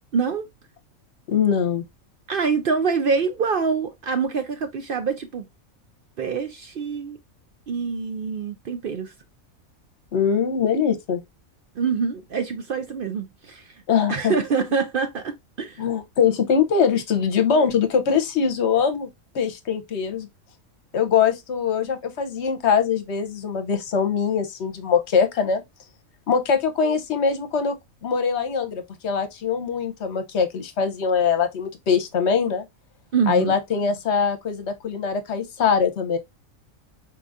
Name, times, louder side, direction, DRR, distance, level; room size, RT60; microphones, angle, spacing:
voice 1, 0.1-0.5 2.3-5.4 6.2-7.2 7.7-9.1 11.8-13.8 14.1-15.8 33.1-33.5, right 5 dB, 60° right, 0.5 m, -25 dB
voice 2, 1.3-1.8 10.1-11.2 13.9-14.3 15.8-19.1 19.3-20.3 20.9-25.6 26.3-27.8 28.0-32.6 33.3-36.2, left 6 dB, 60° left, 1.0 m, -22 dB
4.5 x 3.9 x 2.4 m
omnidirectional pair, 1.4 m